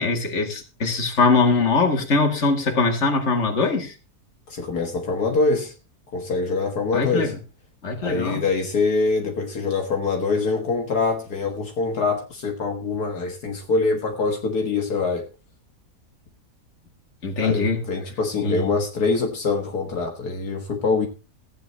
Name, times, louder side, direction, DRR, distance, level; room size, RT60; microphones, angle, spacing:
voice 1, 0.0-3.9 6.9-7.4 7.8-8.4 17.2-17.8 18.4-18.7, left 3 dB, 45° left, 2.5 m, -22 dB
voice 2, 4.5-5.7 6.1-7.3 8.0-15.3 17.4-21.1, left 4 dB, 70° left, 2.1 m, -24 dB
15.5 x 8.9 x 4.2 m
omnidirectional pair, 1.7 m